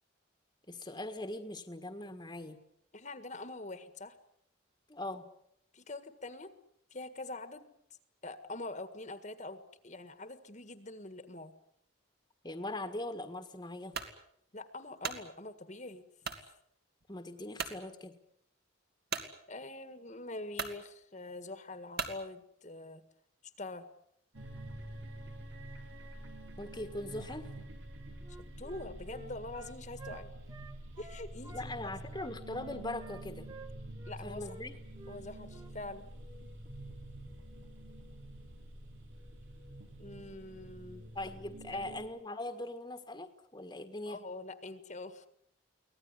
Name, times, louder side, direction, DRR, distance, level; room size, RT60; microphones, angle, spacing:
voice 1, 0.7-2.6 4.9-5.2 12.4-14.0 17.1-18.2 26.6-27.5 31.5-33.5 34.2-34.8 41.1-44.2, left 1 dB, 20° left, 6 dB, 1.7 m, -41 dB
voice 2, 2.9-4.2 5.7-6.5 6.9-7.7 8.2-11.5 14.5-16.1 19.5-23.0 23.6-23.9 28.6-30.3 31.0-31.9 34.1-34.5 35.1-36.1 40.0-41.0 41.7-42.0 44.1-45.3, left 2 dB, 35° left, 10 dB, 1.7 m, -44 dB
sound 1, 13.9-14.2 14.7-15.2 16.2-16.5 17.0-17.1 17.6-17.8 19.1-19.3 20.1-20.2 20.5-20.8 21.9-22.2, right 5 dB, 50° right, 2.7 m, -37 dB
sound 2, 24.3-42.1, right 1 dB, 75° right, 4.7 m, -47 dB
Wind instrument woodwind instrument, 28.2-31.7 32.1-34.2 34.4-34.6 34.9-35.2 35.5-35.7, right 3 dB, 20° right, 1.7 m, -52 dB
24.5 x 18.0 x 9.8 m, 0.72 s
head